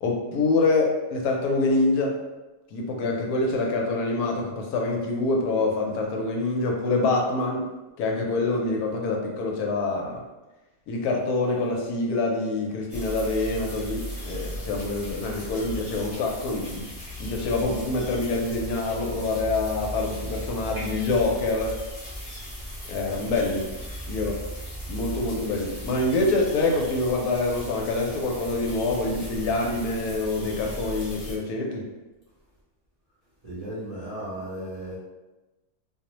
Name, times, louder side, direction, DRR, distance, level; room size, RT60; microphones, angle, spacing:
voice 1, 0.0-2.2 2.7-7.6 8.0-10.2 10.9-16.8 17.2-21.8 22.9-23.7 24.0-24.4 24.9-31.8, left 2 dB, 80° left, 0 dB, 1.1 m, -26 dB
sound 1, 12.9-31.4, equal, 35° left, 0.4 m, -37 dB
voice 2, 33.4-35.0, right 1 dB, 45° right, -11 dB, 0.5 m, -35 dB
2.6 x 2.0 x 2.9 m, 1.1 s
omnidirectional pair, 1.6 m